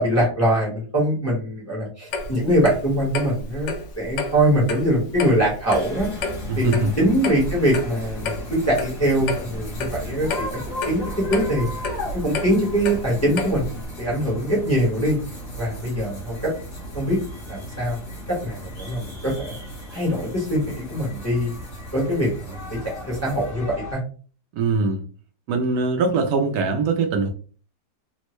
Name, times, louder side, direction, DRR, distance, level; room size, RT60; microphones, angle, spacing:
voice 1, 0.0-6.1 6.6-11.7 12.1-15.2 15.6-16.5 16.9-17.2 17.5-18.0 18.3-19.5 19.9-21.6 21.9-22.8 23.1-24.0, equal, 10° left, -4 dB, 0.8 m, -23 dB
Clock, 2.1-13.8, left 3 dB, 75° left, 0.7 m, -31 dB
sound 1, 5.7-23.9, equal, 50° left, 1.3 m, -35 dB
voice 2, 6.5-6.9 24.5-25.0 25.5-27.3, right 4 dB, 75° right, 4 dB, 1.1 m, -22 dB
3.5 x 2.1 x 3.0 m, 0.39 s
omnidirectional pair, 1.8 m